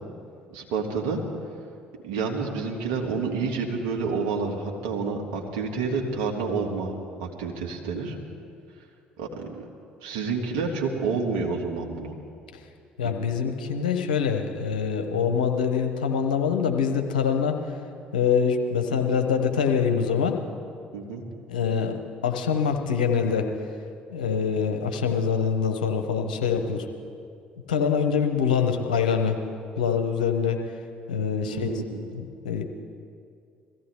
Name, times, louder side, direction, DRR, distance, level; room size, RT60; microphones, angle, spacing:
voice 1, 0.5-1.2 2.0-6.9 7.2-8.2 9.2-9.6 10.0-12.1 13.0-13.1 20.9-21.2 31.4-32.1, right 4 dB, 65° right, 0 dB, 2.0 m, -29 dB
voice 2, 13.0-17.6 18.1-20.4 21.5-21.9 22.2-23.5 24.1-26.9 27.7-29.4 29.8-30.6 31.1-31.7 32.1-32.6, left 6 dB, 80° left, 5 dB, 1.1 m, -24 dB
22.0 x 15.0 x 3.5 m, 2.3 s
hypercardioid pair, 55°, 4 cm